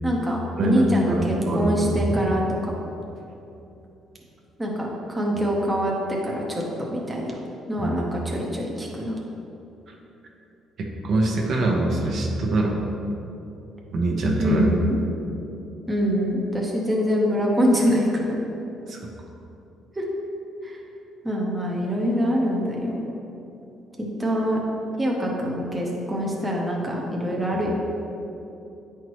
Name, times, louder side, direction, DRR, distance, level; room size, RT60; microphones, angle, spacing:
voice 1, 0.0-2.4 4.6-7.4 7.7-9.2 14.4-15.0 15.9-18.4 19.9-20.1 20.6-20.8 21.2-23.0 24.0-24.6 25.0-27.7, equal, 10° right, -3 dB, 0.8 m, -24 dB
voice 2, 0.6-2.2 7.8-7.9 10.8-12.8 13.9-14.7 18.9-19.0, right 2 dB, 50° right, 0 dB, 0.9 m, -24 dB
9.3 x 4.6 x 3.1 m, 2.9 s
cardioid pair, 155°, 0 cm